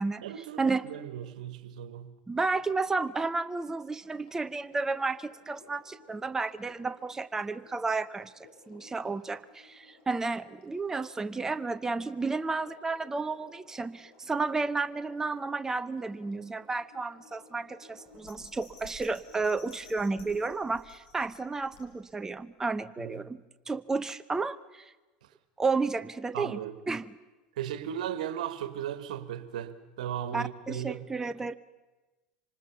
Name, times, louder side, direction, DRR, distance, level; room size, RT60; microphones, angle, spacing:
voice 1, 0.2-2.1 23.0-23.3 26.3-26.8 27.6-31.1, right 10 dB, 75° right, 1.5 m, -36 dB
voice 2, 2.3-8.3 8.7-24.9 25.6-26.6 26.9-27.1 30.3-31.6, right 3 dB, 15° right, 0.6 m, -32 dB
Sink (filling or washing), 2.8-20.6 21.8-21.9, left 3 dB, 75° left, 5.9 m, -58 dB
Bell, 18.0-22.3 22.7-22.8, left 3 dB, 50° left, 6.7 m, -54 dB
25.0 x 19.5 x 7.0 m
hypercardioid pair, 90°, 4 cm